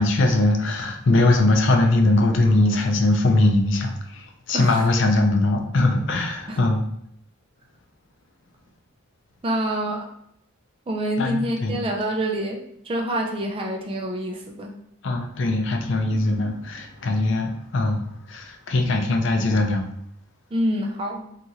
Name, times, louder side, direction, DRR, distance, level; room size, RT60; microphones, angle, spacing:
voice 1, 0.0-6.8 11.2-11.8 15.0-19.8, left 2 dB, 60° left, 3 dB, 0.4 m, -21 dB
voice 2, 4.5-4.9 6.5-6.6 9.4-10.1 10.9-12.6 12.8-14.7 20.5-21.3, right 1 dB, 25° right, 1 dB, 0.3 m, -26 dB
2.9 x 2.4 x 2.7 m, 0.72 s
head